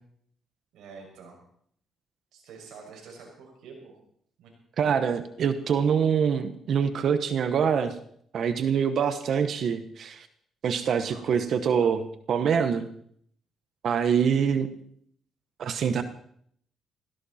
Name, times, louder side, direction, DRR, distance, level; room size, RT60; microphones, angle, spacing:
voice 1, 0.7-1.4 2.3-3.9 4.4-4.5 11.0-11.5, right 5 dB, 85° right, 0 dB, 6.6 m, -47 dB
voice 2, 4.8-7.9 8.3-10.3 10.6-12.9 13.8-14.7 15.6-16.0, right 7 dB, 60° right, 10 dB, 1.2 m, -25 dB
17.5 x 17.0 x 4.4 m, 0.65 s
cardioid pair, 90°, 0 cm